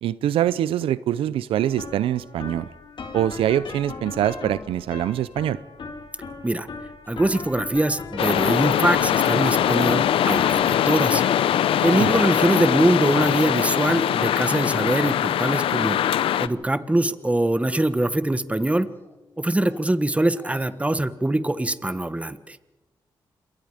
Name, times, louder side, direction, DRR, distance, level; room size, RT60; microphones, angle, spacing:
voice 1, 0.0-2.7 3.1-5.6 12.0-12.1, right 11 dB, 85° right, 17 dB, 0.6 m, -24 dB
sound 1, 1.6-18.8, left 4 dB, 60° left, 3.3 m, -41 dB
sound 2, 7.0-7.6 7.9-8.0 8.3-8.6 9.0-9.5 9.8-10.2 10.6-11.1 11.4-12.1 12.4-12.9 13.2-13.6 14.1-15.6 15.9-16.5 16.9-17.3 17.5-18.2 18.6-19.2 19.5-20.8, left 1 dB, 25° left, 4.7 m, -47 dB
voice 2, 7.1-11.2 11.8-16.0 16.4-18.9 19.4-22.6, right 1 dB, 15° right, 13 dB, 1.4 m, -23 dB
sound 3, 8.2-16.5, left 10 dB, 80° left, 0.7 m, -22 dB
27.5 x 22.0 x 5.0 m, 1.1 s
cardioid pair, 60°, 9 cm